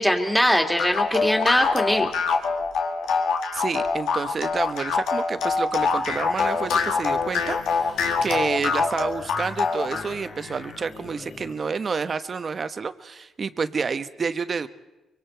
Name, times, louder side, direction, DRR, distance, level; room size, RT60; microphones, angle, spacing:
voice 1, 0.0-2.1, equal, 5° left, 3 dB, 2.5 m, -21 dB
sound 1, 0.8-10.1, left 5 dB, 85° left, 2.1 m, -24 dB
voice 2, 3.5-14.7, right 5 dB, 40° right, 11 dB, 1.0 m, -29 dB
sound 2, 5.8-11.6, left 3 dB, 50° left, 2.6 m, -42 dB
24.0 x 24.0 x 4.6 m, 1.0 s
cardioid pair, 90°, 0 cm